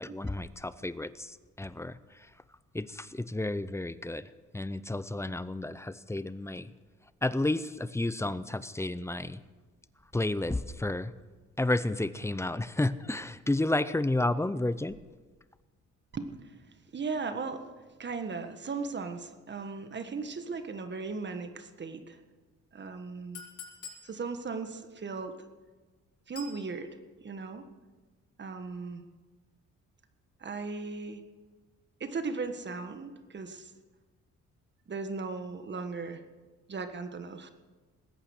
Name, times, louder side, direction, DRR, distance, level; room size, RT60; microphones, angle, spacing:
voice 1, 0.0-2.3 2.7-6.7 7.2-9.4 10.1-11.1 11.6-15.0, left 2 dB, 10° left, 15 dB, 0.6 m, -31 dB
voice 2, 16.1-16.6 16.9-17.7 18.0-22.2 22.7-23.4 24.0-25.4 26.3-27.7 28.4-29.0 30.4-31.2 32.0-33.7 34.9-36.2 36.7-37.5, right 4 dB, 35° right, 8 dB, 1.6 m, -37 dB
Chink clink, 23.3-24.1 26.3-26.6, left 5 dB, 70° left, 5.0 m, -44 dB
20.0 x 8.8 x 6.6 m, 1.3 s
cardioid pair, 90°, 30 cm